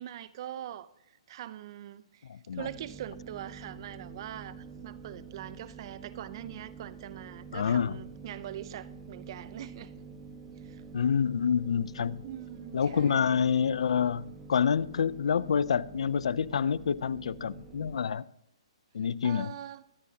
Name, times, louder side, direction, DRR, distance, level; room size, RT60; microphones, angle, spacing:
voice 1, 0.0-10.0 10.6-10.8 12.2-13.5 19.2-19.8, right 12 dB, 50° right, 0.7 m, -43 dB
voice 2, 2.3-2.7 7.5-8.0 10.9-12.2 12.7-18.2 18.9-19.5, left 7 dB, 70° left, 0.5 m, -27 dB
sound 1, 2.6-18.0, right 5 dB, 20° right, 1.8 m, -47 dB
23.0 x 9.8 x 2.8 m
hypercardioid pair, 140°, 3 cm